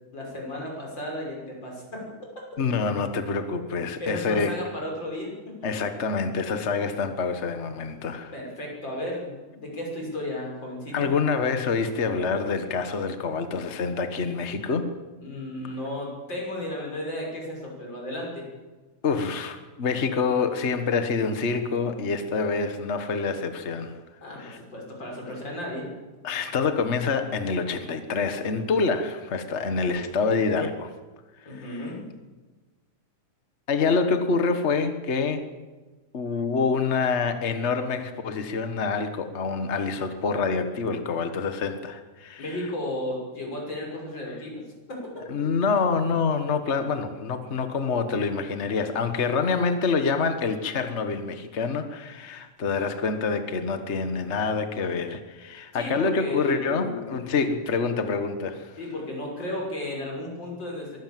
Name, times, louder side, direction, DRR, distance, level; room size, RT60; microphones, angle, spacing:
voice 1, 0.1-2.1 4.0-5.6 8.3-11.1 15.2-18.5 24.2-25.9 31.5-32.0 42.4-44.6 44.9-45.3 55.7-57.5 58.8-61.0, left 1 dB, 35° left, -1 dB, 6.9 m, -34 dB
voice 2, 2.6-4.5 5.6-8.3 10.9-14.9 19.0-24.0 24.4-24.6 26.2-30.9 31.5-31.9 33.7-35.4 36.1-42.4 45.3-58.7, left 4 dB, 55° left, 8 dB, 0.7 m, -26 dB
23.0 x 16.5 x 7.7 m, 1.3 s
omnidirectional pair, 3.5 m